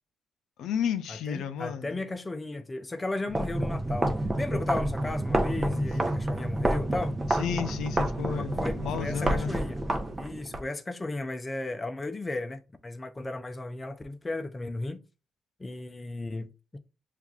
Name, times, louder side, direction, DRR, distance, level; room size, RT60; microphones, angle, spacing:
voice 1, 0.6-1.9 5.5-5.9 7.3-9.5, left 8 dB, 80° left, 0.4 m, -32 dB
voice 2, 1.1-4.1 4.4-7.2 8.4-9.8 10.2-15.0 15.6-16.8, left 2 dB, 20° left, 0.5 m, -35 dB
sound 1, 3.3-10.6, right 1 dB, 25° right, 0.7 m, -29 dB
6.9 x 2.4 x 2.4 m
cardioid pair, 90°, 0 cm